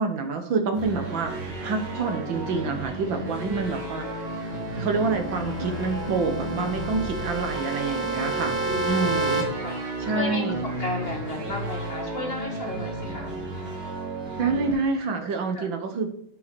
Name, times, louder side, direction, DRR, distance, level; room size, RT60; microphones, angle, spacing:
voice 1, 0.0-4.3 4.7-9.5 9.8-10.7 14.4-16.1, right 4 dB, 65° right, 5 dB, 1.7 m, -27 dB
sound 1, 0.7-14.7, right 1 dB, 90° right, 3.5 m, -33 dB
sound 2, 4.5-9.4, right 3 dB, 40° right, 2.2 m, -31 dB
voice 2, 8.7-9.3 9.6-10.4 10.8-13.4 15.5-15.7, left 1 dB, 30° left, -1 dB, 1.9 m, -34 dB
8.2 x 5.6 x 5.1 m, 0.70 s
omnidirectional pair, 2.3 m